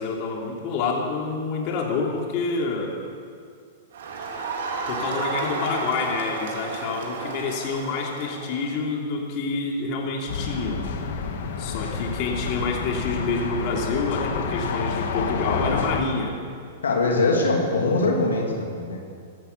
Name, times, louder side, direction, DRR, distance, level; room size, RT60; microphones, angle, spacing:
voice 1, 0.0-3.0 4.9-10.8 11.6-16.4, left 4 dB, 50° left, 0 dB, 3.1 m, -28 dB
Crowd, 3.9-8.7, right 4 dB, 75° right, 3.0 m, -32 dB
sound 1, 10.3-16.0, left 5 dB, 70° left, 2.0 m, -29 dB
voice 2, 16.8-19.0, left 3 dB, 90° left, 0 dB, 2.8 m, -22 dB
15.5 x 13.0 x 7.0 m, 2.2 s
hypercardioid pair, 115°, 0 cm